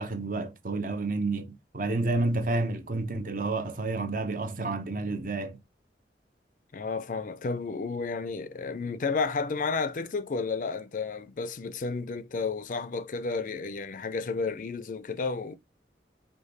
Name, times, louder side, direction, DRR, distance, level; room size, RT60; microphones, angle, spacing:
voice 1, 0.0-5.6, right 2 dB, 50° right, 0.7 m, -30 dB
voice 2, 6.7-15.6, left 4 dB, 45° left, 0.4 m, -32 dB
5.0 x 2.3 x 3.9 m
head